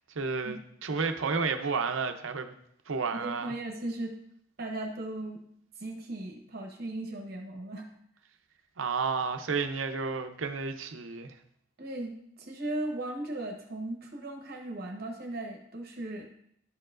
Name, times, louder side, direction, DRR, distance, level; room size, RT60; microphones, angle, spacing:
voice 1, 0.1-2.5 2.9-3.5 8.8-11.3, right 4 dB, 85° right, 7 dB, 0.7 m, -31 dB
voice 2, 3.1-4.1 4.6-5.4 5.8-7.9 11.8-16.3, right 1 dB, 50° right, 2 dB, 1.0 m, -37 dB
11.0 x 4.5 x 2.5 m, 0.70 s
head